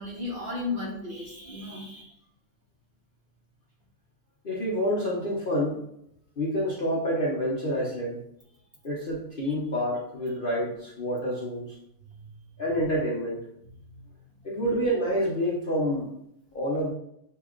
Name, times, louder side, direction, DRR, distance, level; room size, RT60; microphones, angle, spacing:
voice 1, 0.0-2.1 9.4-9.5 12.2-12.6 13.9-14.1, left 3 dB, 40° right, -5 dB, 1.2 m, -36 dB
voice 2, 4.4-5.8 6.4-8.2 8.8-11.8 12.6-13.4 14.4-16.1 16.5-16.9, equal, 45° left, -5 dB, 0.8 m, -28 dB
7.2 x 2.8 x 2.4 m, 0.77 s
omnidirectional pair, 1.6 m